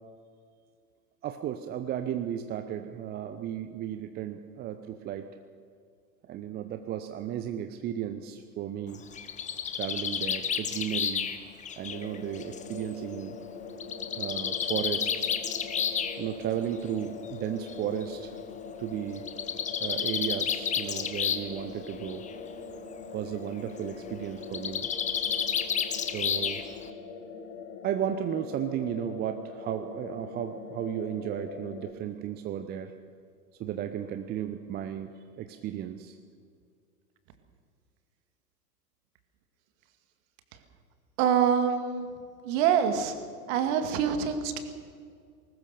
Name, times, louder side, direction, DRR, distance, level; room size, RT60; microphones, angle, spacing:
voice 1, 1.2-5.3 6.3-9.0 9.7-11.3 11.8-13.4 14.2-15.4 16.2-18.4 18.8-19.3 19.8-22.2 23.1-24.9 26.0-26.6 27.8-32.9 33.6-36.2, right 10 dB, 20° right, 8 dB, 0.7 m, -34 dB
Bird, 8.9-12.7 13.8-16.2 17.2-17.3 17.7-17.8 18.0-18.1 19.2-21.6 21.9-22.3 24.4-26.9, left 7 dB, 15° left, 1.0 m, -31 dB
sound 1, 11.9-31.9, left 5 dB, 55° left, 2.2 m, -42 dB
voice 2, 41.2-42.1 42.5-43.2 43.5-44.6, right 8 dB, 40° right, 8 dB, 2.2 m, -25 dB
20.0 x 19.0 x 6.8 m, 2.2 s
figure-of-eight pair, 95°, 48 cm